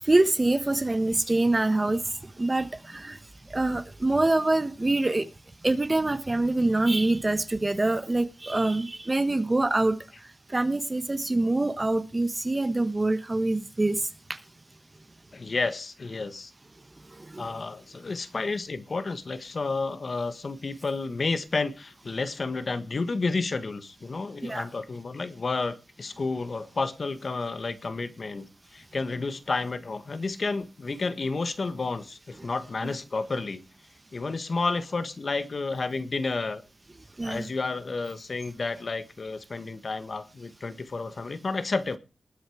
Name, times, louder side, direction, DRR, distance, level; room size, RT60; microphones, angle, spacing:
voice 1, 0.1-2.0 2.4-3.2 3.5-5.2 5.6-9.9 10.5-14.0 17.3-17.5 24.5-24.6 32.8-33.0 37.2-37.5, right 2 dB, 25° right, 11 dB, 1.1 m, -25 dB
voice 2, 15.3-16.5 17.4-33.6 34.1-36.6 37.2-42.0, left 3 dB, 55° left, 12 dB, 1.5 m, -31 dB
20.0 x 9.0 x 5.0 m, 0.32 s
wide cardioid pair, 115°, 0 cm